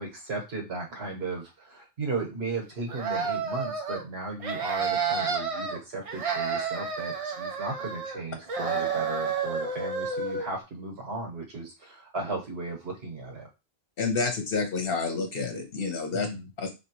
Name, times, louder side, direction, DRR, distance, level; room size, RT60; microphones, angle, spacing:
voice 1, 0.0-13.5 16.1-16.5, right 3 dB, 90° right, 1 dB, 1.5 m, -36 dB
sound 1, 2.9-4.0 4.4-5.8 6.1-8.2 8.5-10.5, right 5 dB, 45° right, 0.5 m, -30 dB
voice 2, 14.0-16.3 16.6-16.7, left 4 dB, 65° left, 3 dB, 1.1 m, -29 dB
3.1 x 3.0 x 2.9 m, 0.25 s
omnidirectional pair, 1.0 m